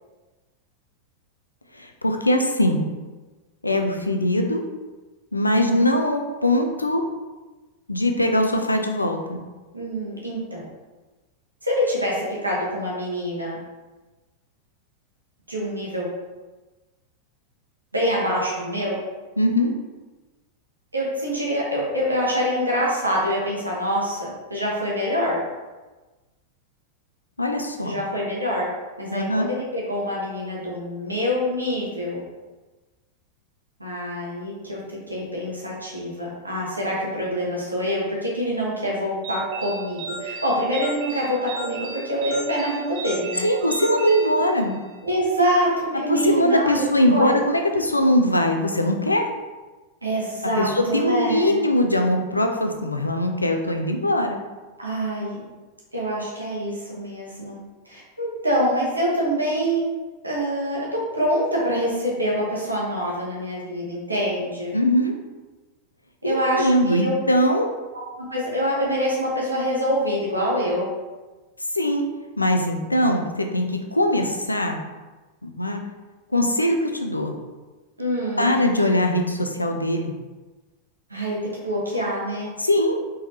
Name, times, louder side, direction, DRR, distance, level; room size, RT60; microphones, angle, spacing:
voice 1, 1.7-2.8 3.6-4.6 5.3-7.1 7.9-9.4 19.4-19.7 27.4-28.0 29.1-29.5 43.4-44.8 46.1-49.3 50.6-54.4 64.7-65.1 66.2-67.7 71.7-72.1 72.4-74.8 75.4-75.8 76.3-77.3 78.4-80.1 82.6-83.0, left 1 dB, 85° left, 4 dB, 0.5 m, -21 dB
voice 2, 9.7-10.7 11.6-13.6 15.5-16.1 17.9-19.0 20.9-25.4 27.8-28.7 29.0-32.2 33.8-34.8 35.1-43.5 45.0-46.9 47.1-47.4 50.0-51.6 54.8-55.4 55.9-57.6 57.8-59.9 60.2-64.7 66.2-67.1 68.2-70.9 78.0-78.6 81.1-82.5, equal, 85° right, -4 dB, 1.3 m, -25 dB
sound 1, 39.2-45.0, right 4 dB, 45° right, 1.0 m, -35 dB
4.2 x 3.8 x 2.8 m, 1.2 s
figure-of-eight pair, 90°, 0 cm